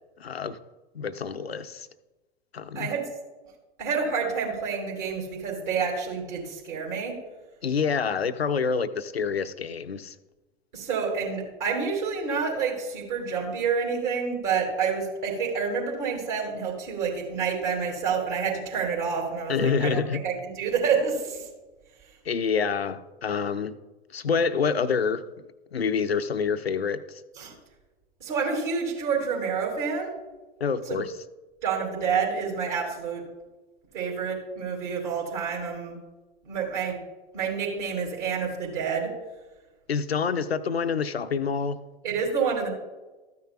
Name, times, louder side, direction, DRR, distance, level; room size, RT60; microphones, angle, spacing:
voice 1, 0.2-0.6 0.9-1.9 2.5-2.9 7.6-10.2 19.5-20.2 22.2-23.8 24.1-25.2 25.7-27.2 30.6-31.1 39.9-41.8, left 5 dB, 85° left, 0.5 m, -27 dB
voice 2, 3.8-7.2 10.7-21.5 27.4-27.5 28.2-30.1 30.9-31.0 31.6-33.2 33.9-36.0 36.4-37.0 37.3-39.1 42.0-42.7, right 6 dB, 55° right, 2.4 m, -28 dB
13.5 x 9.4 x 2.3 m
figure-of-eight pair, 95°, 30 cm